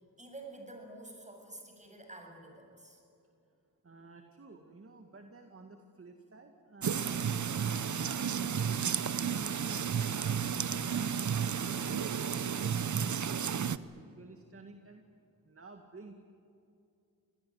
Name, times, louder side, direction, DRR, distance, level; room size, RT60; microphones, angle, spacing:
voice 1, 0.2-3.0, right 2 dB, 20° right, 2 dB, 7.8 m, -49 dB
voice 2, 3.8-10.3 10.7-15.0 15.4-16.1, right 3 dB, 40° right, 5 dB, 2.0 m, -54 dB
sound 1, 6.8-13.8, right 7 dB, 55° right, 0.9 m, -32 dB
26.5 x 18.5 x 9.6 m, 2.7 s
cardioid pair, 65°, 35 cm